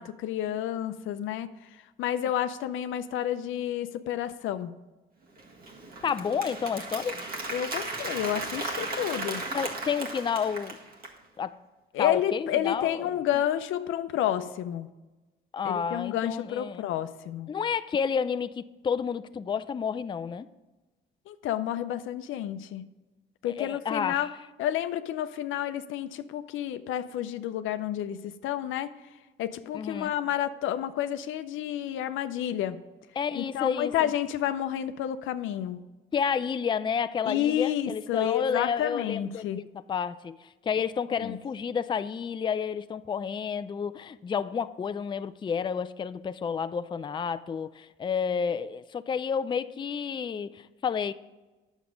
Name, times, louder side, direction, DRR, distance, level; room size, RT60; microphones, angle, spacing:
voice 1, 0.0-4.7 7.5-9.4 11.9-14.9 15.6-17.5 21.3-22.9 23.4-24.3 24.6-28.9 29.4-32.8 33.3-35.8 37.2-39.6 41.2-41.4, left 11 dB, 85° left, 0.6 m, -30 dB
Applause, 5.4-11.2, right 2 dB, 50° right, 1.7 m, -36 dB
voice 2, 6.0-7.1 9.5-10.8 11.4-11.6 12.0-13.1 15.5-16.8 17.5-20.5 23.4-24.3 29.7-30.1 33.2-34.1 36.1-51.1, left 6 dB, 25° left, 0.4 m, -30 dB
9.4 x 7.2 x 5.1 m
cardioid pair, 90°, 20 cm